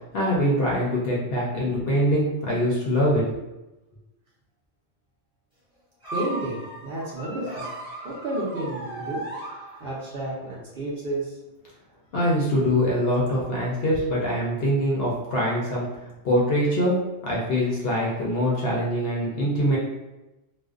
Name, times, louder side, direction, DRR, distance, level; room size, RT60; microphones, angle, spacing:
voice 1, 0.1-3.2 12.1-15.9 16.2-19.8, equal, 60° left, -4 dB, 0.7 m, -23 dB
sound 1, 6.0-10.2, right 1 dB, 5° right, 0.8 m, -36 dB
voice 2, 6.1-7.7 8.0-9.2 9.8-11.4, right 1 dB, 60° right, -6 dB, 0.7 m, -31 dB
2.5 x 2.1 x 2.3 m, 1.0 s
omnidirectional pair, 1.3 m